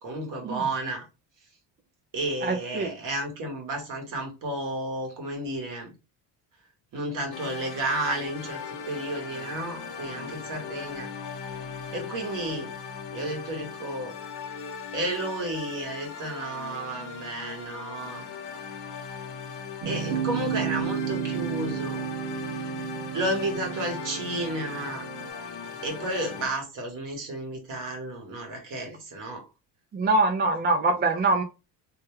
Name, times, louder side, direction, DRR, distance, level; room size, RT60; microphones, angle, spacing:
voice 1, 0.0-1.0 2.1-5.9 6.9-8.6 8.9-11.1 11.9-12.7 13.1-14.1 14.9-18.2 19.8-22.0 23.1-25.0 25.8-29.5, right 1 dB, 50° right, 1.5 m, -32 dB
voice 2, 2.4-2.9 29.9-31.4, right 3 dB, 25° right, 0.4 m, -24 dB
sound 1, 7.3-26.5, left 6 dB, 45° left, 0.9 m, -39 dB
sound 2, 19.8-25.3, right 8 dB, 80° right, 0.7 m, -32 dB
3.0 x 2.2 x 3.1 m
cardioid pair, 105°, 40 cm